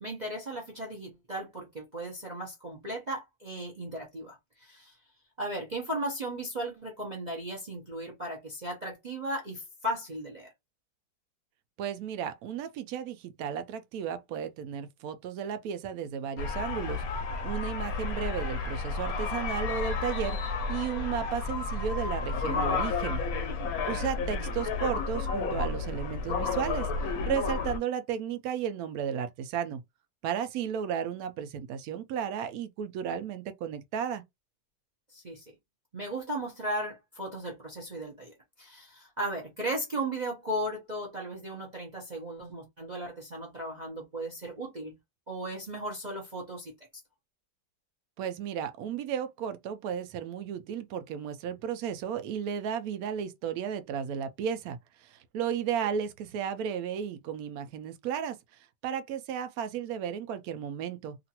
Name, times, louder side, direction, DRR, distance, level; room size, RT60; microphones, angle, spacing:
voice 1, 0.0-4.9 5.4-10.5 35.1-35.6 35.9-44.9 45.3-46.7, right 1 dB, 50° right, 0.5 m, -36 dB
voice 2, 11.8-17.0 17.4-23.2 23.9-29.8 30.2-34.2 48.2-61.2, right 8 dB, 75° right, 0.9 m, -34 dB
sound 1, 16.4-27.8, left 4 dB, 65° left, 0.9 m, -31 dB
2.9 x 2.5 x 2.8 m
omnidirectional pair, 2.0 m